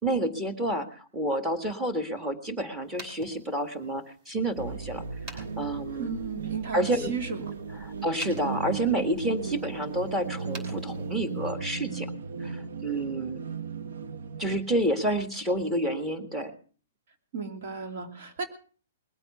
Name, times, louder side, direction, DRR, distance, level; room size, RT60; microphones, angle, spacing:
voice 1, 0.0-5.0 5.3-6.1 6.7-7.1 7.8-12.1 12.4-13.4 14.4-16.5, right 1 dB, 10° right, 7 dB, 1.8 m, -29 dB
sound 1, 2.8-11.5, right 2 dB, 30° right, 5.6 m, -50 dB
sound 2, 4.6-14.6, right 5 dB, 85° right, 1.0 m, -36 dB
voice 2, 6.0-7.4 17.3-18.5, right 5 dB, 55° right, 6 dB, 2.8 m, -34 dB
20.5 x 8.9 x 6.7 m, 0.42 s
hypercardioid pair, 150°, 0 cm